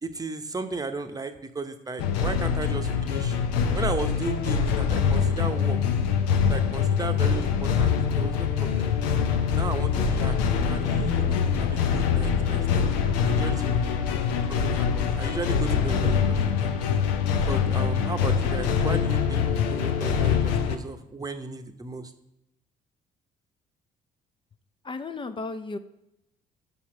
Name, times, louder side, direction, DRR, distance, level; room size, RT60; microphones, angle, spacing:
voice 1, 0.0-3.4 3.7-5.8 6.5-9.0 9.5-12.9 13.3-13.9 14.5-16.7 17.4-22.1, right 3 dB, 20° right, 7 dB, 0.9 m, -35 dB
sound 1, 2.0-20.8, left 7 dB, 75° left, 0.6 m, -24 dB
voice 2, 24.8-25.8, left 3 dB, 25° left, 10 dB, 0.5 m, -34 dB
5.8 x 5.5 x 6.3 m, 0.84 s
hypercardioid pair, 50°, 20 cm